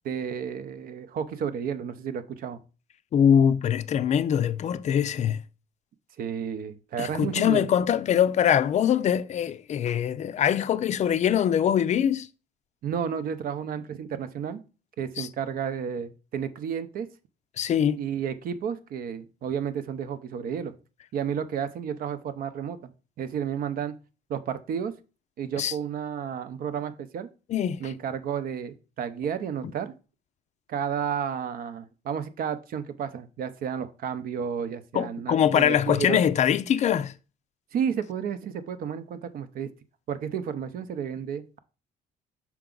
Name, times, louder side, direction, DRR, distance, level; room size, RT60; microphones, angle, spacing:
voice 1, 0.0-2.6 6.2-7.7 12.8-14.6 15.0-17.1 18.0-20.7 21.1-22.9 23.2-24.0 24.3-24.9 25.4-27.3 27.8-29.9 30.7-36.2 37.7-39.7 40.1-41.6, right 8 dB, 60° right, 0.7 m, -32 dB
voice 2, 3.1-5.4 7.0-12.3 15.2-15.3 17.6-18.0 25.6-25.7 27.5-27.9 34.9-37.1, left 9 dB, 45° left, 0.4 m, -23 dB
5.9 x 4.6 x 3.8 m
cardioid pair, 110°, 17 cm